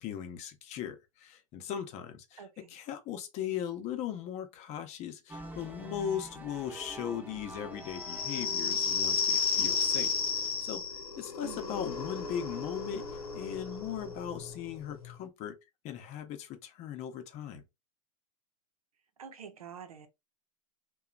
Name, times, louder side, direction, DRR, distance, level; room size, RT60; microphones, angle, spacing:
voice 1, 0.0-10.8 11.2-13.0 13.3-15.5 15.8-17.6, left 9 dB, 40° left, 0.7 m, -38 dB
voice 2, 2.4-2.7 11.4-11.8 19.2-20.1, right 8 dB, 85° right, 0.7 m, -47 dB
sound 1, 5.3-10.7, right 2 dB, 10° right, 0.8 m, -46 dB
sound 2, 7.8-15.1, left 5 dB, 85° left, 0.8 m, -33 dB
2.9 x 2.3 x 2.3 m
hypercardioid pair, 100°, 18 cm